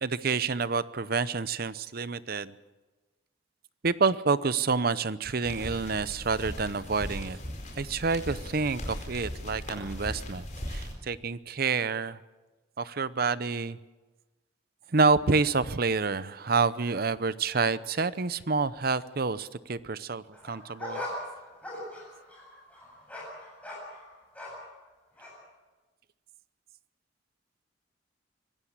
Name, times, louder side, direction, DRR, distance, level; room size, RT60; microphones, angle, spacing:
voice 1, 0.0-2.5 3.8-7.4 7.8-12.2 12.8-13.8 14.9-21.0, right 4 dB, 50° right, 16 dB, 0.7 m, -28 dB
sound 1, 5.4-10.9, equal, 40° left, 4.7 m, -38 dB
sound 2, 20.3-24.8 25.2-25.4, left 1 dB, 5° left, 7.3 m, -40 dB
25.0 x 16.5 x 7.4 m, 1.2 s
head